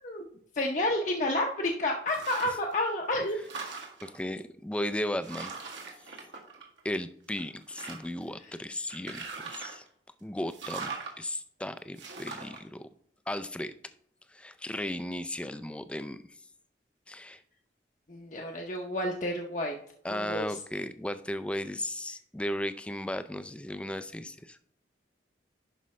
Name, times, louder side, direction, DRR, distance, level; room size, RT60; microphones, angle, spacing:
voice 1, 0.5-3.4 8.4-8.6 18.1-19.7 20.1-20.6, left 1 dB, 40° left, 1 dB, 0.7 m, -30 dB
sound 1, 2.1-2.7 3.1-4.2 4.8-4.9 5.2-7.0 7.3-8.2 8.9-9.9 10.5-11.1 12.0-12.6, right 4 dB, 80° right, 1.8 m, -41 dB
voice 2, 4.0-5.5 6.8-9.8 10.2-10.9 11.2-12.8 13.3-13.7 14.3-16.2 17.1-17.4 20.0-24.6, left 1 dB, 5° left, 11 dB, 0.3 m, -35 dB
11.0 x 5.1 x 3.2 m, 0.65 s
head